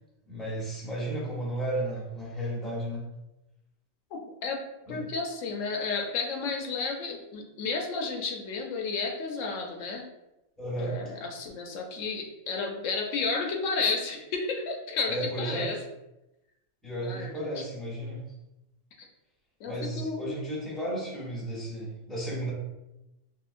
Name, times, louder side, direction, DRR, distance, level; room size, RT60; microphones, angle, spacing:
voice 1, 0.3-3.0 4.9-5.0 10.6-11.0 15.1-15.7 16.8-18.2 19.6-22.5, right 1 dB, ahead, -6 dB, 0.9 m, -33 dB
voice 2, 4.1-10.0 10.8-15.8 17.0-17.6 19.6-20.4, left 4 dB, 85° left, 2 dB, 0.9 m, -32 dB
3.6 x 2.6 x 2.5 m, 0.94 s
omnidirectional pair, 1.3 m